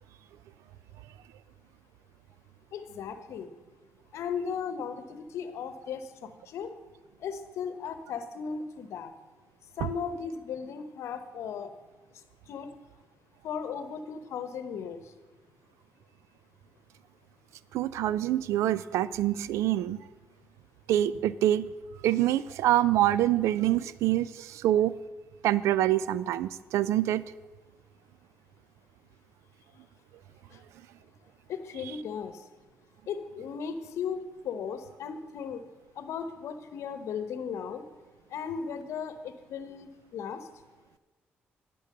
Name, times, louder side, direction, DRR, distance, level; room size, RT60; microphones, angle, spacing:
voice 1, 2.7-3.5 4.1-6.7 7.2-9.1 9.8-11.7 12.5-12.7 13.4-15.0 30.5-30.6 31.5-32.4 33.1-35.6 36.0-37.8 38.3-40.5, left 6 dB, 75° left, 11 dB, 0.9 m, -36 dB
voice 2, 17.7-20.0 20.9-21.7 22.0-24.9 25.4-27.2, right 13 dB, 80° right, 18 dB, 0.4 m, -25 dB
11.5 x 6.1 x 6.6 m, 1.2 s
supercardioid pair, 50°, 5 cm